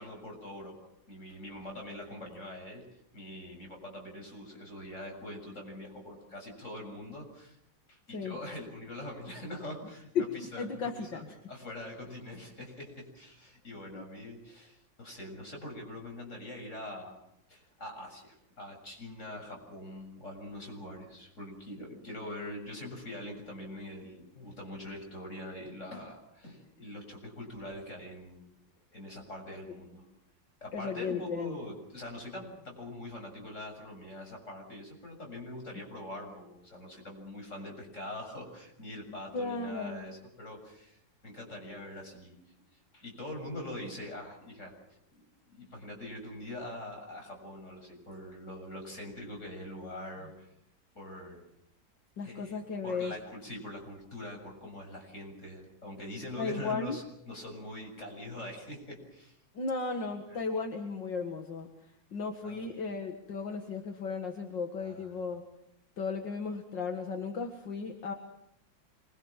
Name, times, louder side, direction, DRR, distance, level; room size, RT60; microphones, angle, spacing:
voice 1, 0.0-2.9 3.1-7.6 7.9-17.2 17.5-28.5 28.9-30.1 30.6-42.4 42.9-44.7 45.5-50.5 50.9-51.4 52.2-59.4 60.3-60.4 62.4-62.6 64.8-65.1, left 1 dB, 40° left, 1 dB, 7.7 m, -43 dB
voice 2, 10.2-11.3 13.9-14.0 29.6-29.7 30.7-31.5 39.3-40.0 52.2-53.1 56.4-57.0 59.6-61.7 62.1-65.4 66.0-68.1, left 4 dB, 70° left, 3 dB, 2.6 m, -35 dB
27.0 x 23.0 x 7.4 m, 0.77 s
omnidirectional pair, 2.0 m